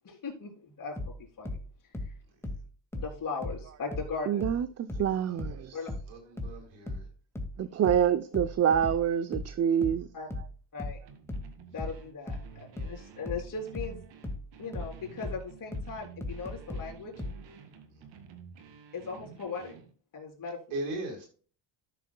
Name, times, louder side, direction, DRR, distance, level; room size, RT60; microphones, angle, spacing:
voice 1, 0.0-1.6 3.0-4.4 5.7-5.9 7.7-8.0 10.1-10.3 10.7-11.0 11.7-14.0 14.6-17.1 18.9-19.7 20.1-20.6, left 4 dB, 45° left, 3.5 m, -38 dB
sound 1, 1.0-4.1 4.4-17.4, left 1 dB, 5° left, 1.9 m, -37 dB
voice 2, 4.3-5.8 7.6-10.1 10.4-10.5, right 9 dB, 35° right, 0.6 m, -27 dB
voice 3, 5.2-5.8 6.1-7.1 20.7-21.3, right 2 dB, 85° right, 4.4 m, -38 dB
sound 2, 11.0-19.9, right 6 dB, 70° right, 2.0 m, -51 dB
13.0 x 6.3 x 2.2 m
cardioid pair, 100°, 46 cm